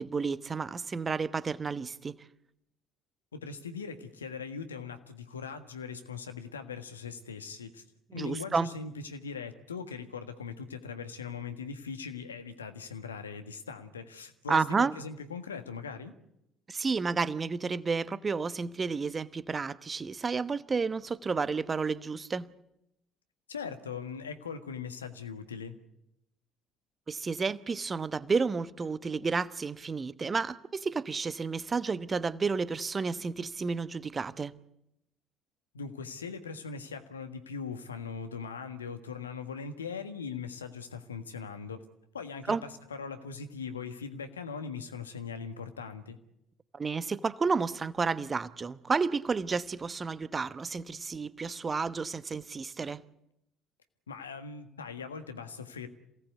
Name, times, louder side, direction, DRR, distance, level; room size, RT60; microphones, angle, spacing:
voice 1, 0.0-2.2 8.1-8.7 14.5-14.9 16.7-22.5 27.1-34.5 42.5-42.6 46.7-53.0, right 4 dB, 30° right, 1.0 m, -31 dB
voice 2, 3.3-7.8 8.1-16.1 23.5-25.8 35.7-41.8 42.1-46.2 54.1-55.9, left 5 dB, 80° left, 1.5 m, -40 dB
27.0 x 18.0 x 8.2 m
figure-of-eight pair, 50°, 0 cm